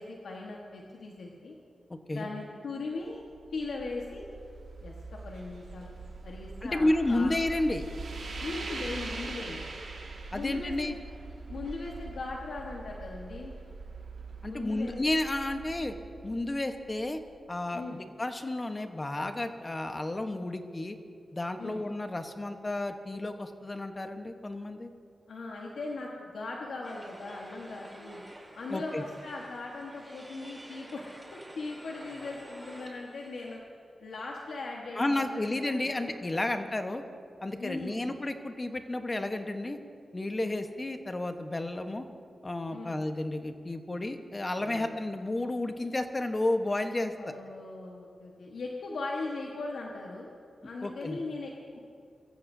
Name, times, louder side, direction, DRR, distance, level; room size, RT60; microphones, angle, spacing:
voice 1, 0.0-1.5 2.1-3.2 3.5-4.2 4.8-5.9 6.2-7.3 8.4-9.6 10.3-11.0 11.5-13.5 14.4-15.0 17.7-18.0 21.6-21.8 25.3-28.2 28.5-31.0 31.3-33.6 34.0-36.0 37.6-38.2 42.7-43.0 44.6-45.0 47.2-50.3 50.6-51.8, left 3 dB, 80° left, -2 dB, 1.4 m, -39 dB
voice 2, 1.9-2.3 6.6-7.8 10.3-11.0 14.4-15.9 16.2-17.2 17.5-17.8 18.2-21.0 21.3-24.9 28.7-29.0 35.0-37.0 37.4-39.8 40.1-42.1 42.4-47.1 50.8-51.2, left 2 dB, 30° left, 6 dB, 1.1 m, -31 dB
sound 1, 3.1-17.3, right 3 dB, 80° right, 3.0 m, -42 dB
sound 2, 26.8-33.6, right 1 dB, 15° right, 3.5 m, -50 dB
23.0 x 15.0 x 2.7 m, 2.3 s
cardioid pair, 65°, 0 cm